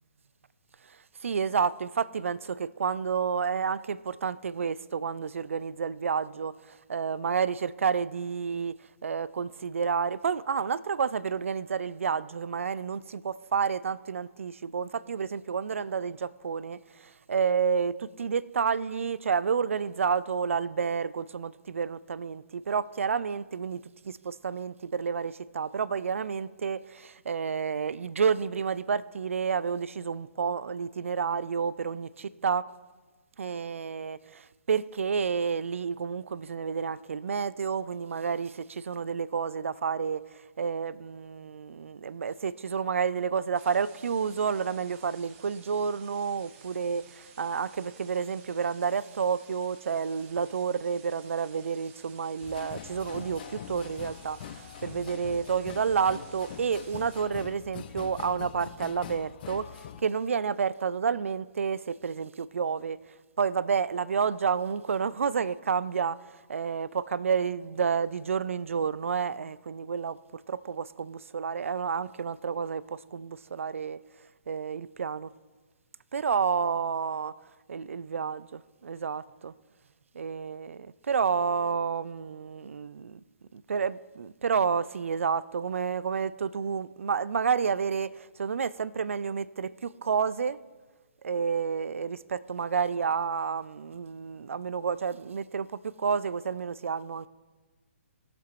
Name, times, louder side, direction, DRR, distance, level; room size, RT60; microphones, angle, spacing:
voice 1, 0.8-8.8 9.0-32.6 33.4-63.0 63.4-74.0 74.5-75.3 76.1-77.3 77.7-79.5 80.1-83.2 83.5-90.6 91.2-97.3, right 6 dB, 70° right, 0.4 m, -30 dB
sound 1, 43.5-57.2, right 7 dB, 25° right, 1.1 m, -55 dB
sound 2, 52.4-60.0, left 9 dB, 40° left, 0.5 m, -43 dB
19.5 x 6.9 x 3.0 m
figure-of-eight pair, 135°, 7 cm